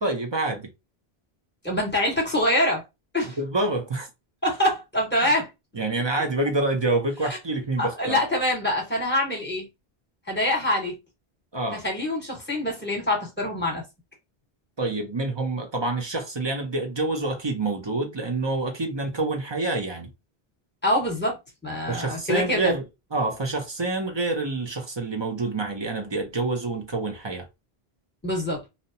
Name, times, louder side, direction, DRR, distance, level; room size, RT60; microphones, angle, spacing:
voice 1, 0.0-0.7 3.4-4.1 5.7-8.2 11.5-11.8 14.8-20.1 21.9-22.8 23.1-27.5, right 2 dB, 35° right, 0.5 m, -27 dB
voice 2, 1.6-2.8 3.1-3.4 4.4-5.5 7.8-9.7 10.3-10.9 11.7-13.8 20.8-21.4 21.6-22.7 28.2-28.6, left 1 dB, 10° left, 1.1 m, -25 dB
2.7 x 2.1 x 2.7 m
omnidirectional pair, 1.0 m